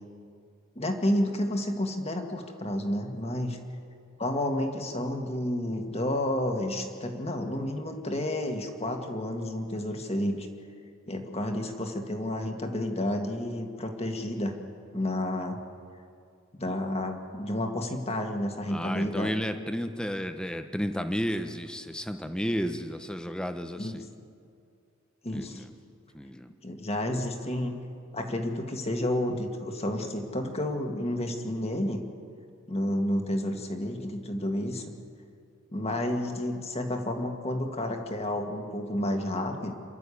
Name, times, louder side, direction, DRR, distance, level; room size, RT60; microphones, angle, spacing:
voice 1, 0.8-3.6 4.2-10.5 11.1-14.6 14.9-15.6 16.6-19.4 23.8-24.0 25.2-25.6 26.6-27.8 28.1-32.0 32.7-34.9 35.7-39.7, left 1 dB, 30° left, 4 dB, 1.8 m, -30 dB
voice 2, 18.7-24.1 25.3-25.7 26.1-26.5, equal, 5° left, 8 dB, 0.9 m, -32 dB
28.0 x 12.0 x 8.5 m, 2.4 s
head